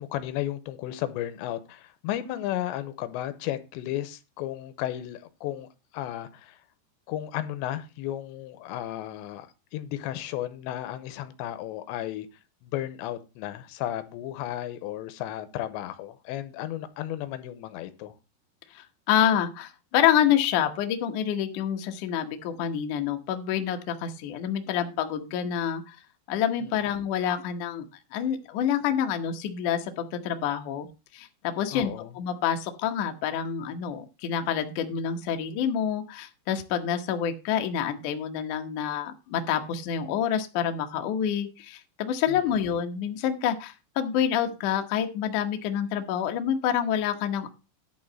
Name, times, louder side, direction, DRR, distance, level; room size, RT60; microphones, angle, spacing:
voice 1, 0.0-5.7 5.9-6.6 7.1-9.5 9.7-12.3 12.6-18.1 31.7-32.1 42.3-42.4, left 13 dB, 90° left, 3.0 m, -34 dB
voice 2, 18.7-26.0 26.3-27.9 28.1-30.9 31.1-47.5, left 9 dB, 70° left, 1.9 m, -27 dB
11.0 x 3.9 x 7.6 m
omnidirectional pair, 5.2 m